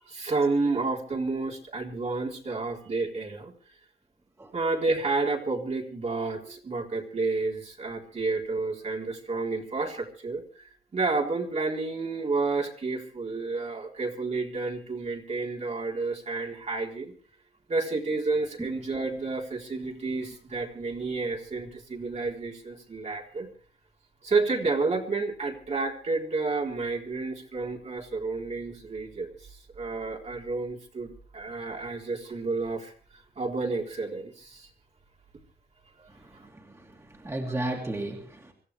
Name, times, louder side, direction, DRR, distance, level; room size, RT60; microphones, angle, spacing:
voice 1, 0.1-3.5 4.5-17.1 17.7-23.5 24.2-29.5 29.7-32.9 33.4-34.7 36.0-36.1 36.3-36.5, right 3 dB, 45° right, 0 dB, 4.0 m, -30 dB
voice 2, 36.5-38.5, right 1 dB, 15° right, 0 dB, 3.0 m, -34 dB
25.5 x 15.0 x 3.4 m, 0.42 s
wide cardioid pair, 125°, 16 cm